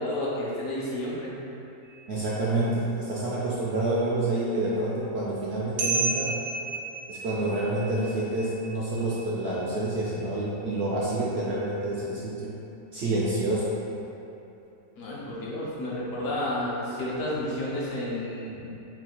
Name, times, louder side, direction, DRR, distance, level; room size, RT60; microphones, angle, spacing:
voice 1, 0.0-1.4 15.0-18.8, left 1 dB, 65° left, -6 dB, 1.2 m, -31 dB
sound 1, 1.8-2.4 5.8-11.5, right 4 dB, 85° right, 1.1 m, -34 dB
voice 2, 2.1-6.3 7.1-12.5 12.9-13.8, right 2 dB, 60° right, -7 dB, 0.7 m, -28 dB
4.0 x 2.4 x 4.4 m, 2.9 s
omnidirectional pair, 1.5 m